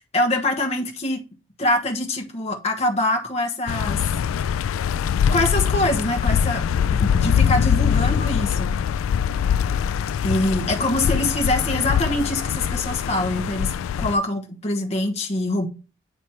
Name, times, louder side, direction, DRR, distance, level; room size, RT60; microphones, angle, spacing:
voice 1, 0.1-1.2 1.6-4.0 5.3-6.6 6.9-8.7 10.2-15.7, left 1 dB, 30° left, 1.2 m, -24 dB
sound 1, 3.7-14.2, left 8 dB, 85° left, 0.3 m, -23 dB
8.9 x 3.2 x 4.2 m
head